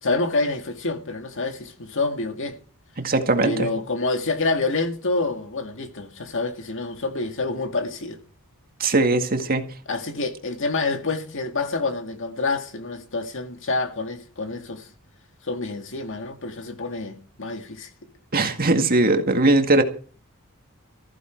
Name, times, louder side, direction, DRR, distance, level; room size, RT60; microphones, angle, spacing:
voice 1, 0.0-2.6 3.4-8.2 9.9-14.9 15.4-17.9, left 3 dB, 60° left, 2.0 m, -27 dB
voice 2, 3.0-3.7 8.8-9.6 18.3-19.8, right 2 dB, 45° right, 1.9 m, -19 dB
14.5 x 14.5 x 4.5 m
head